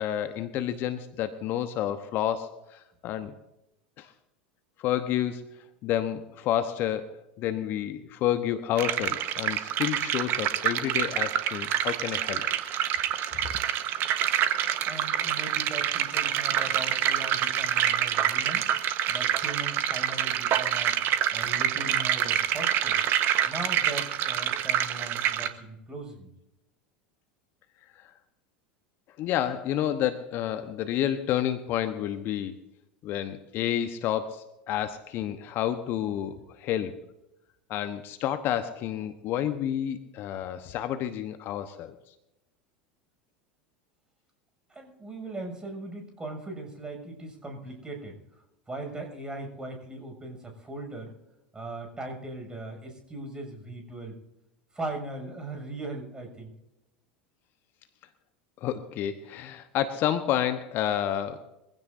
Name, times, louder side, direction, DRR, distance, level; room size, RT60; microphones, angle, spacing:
voice 1, 0.0-3.3 4.0-4.1 4.8-5.4 5.8-12.5 27.9-28.1 29.2-32.6 33.0-36.9 37.7-41.9 58.6-61.4, left 11 dB, 45° left, 10 dB, 1.1 m, -30 dB
sound 1, 8.8-25.5, right 10 dB, 45° right, 1.3 m, -27 dB
voice 2, 14.9-18.7 19.1-20.9 21.3-23.0 23.4-26.3 44.7-48.2 48.7-51.1 51.5-54.2 54.7-56.5, right 2 dB, 15° right, 3 dB, 6.9 m, -39 dB
24.0 x 16.0 x 2.7 m, 0.91 s
figure-of-eight pair, 80°, 5 cm